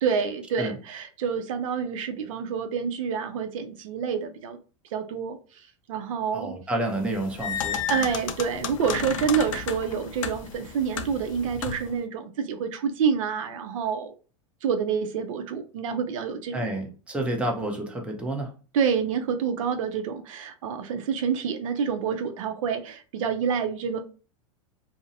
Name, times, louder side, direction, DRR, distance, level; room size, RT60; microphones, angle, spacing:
voice 1, 0.0-4.6 4.9-5.4 5.9-6.5 7.9-14.1 14.6-16.7 18.7-24.0, right 6 dB, 75° right, 0.5 m, -28 dB
voice 2, 6.3-8.0 16.5-18.5, right 1 dB, 5° right, 0.6 m, -29 dB
sound 1, 7.0-12.0, left 8 dB, 80° left, 0.4 m, -33 dB
2.5 x 2.0 x 2.6 m
hypercardioid pair, 120°, 17 cm